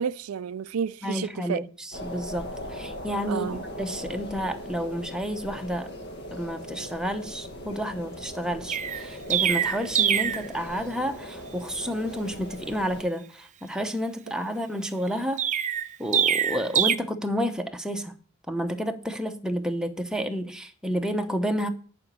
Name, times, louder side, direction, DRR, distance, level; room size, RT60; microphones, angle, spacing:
voice 1, 0.0-1.7 3.3-3.6, right 7 dB, 85° right, 0.4 m, -31 dB
voice 2, 1.0-5.9 6.3-15.4 16.0-18.1 18.5-21.7, equal, 5° right, 0.8 m, -30 dB
sound 1, 1.9-13.0, left 1 dB, 50° left, 1.5 m, -39 dB
Chirp tweet, 8.7-10.5 15.4-16.9, right 9 dB, 35° right, 0.5 m, -24 dB
10.5 x 5.1 x 8.2 m
head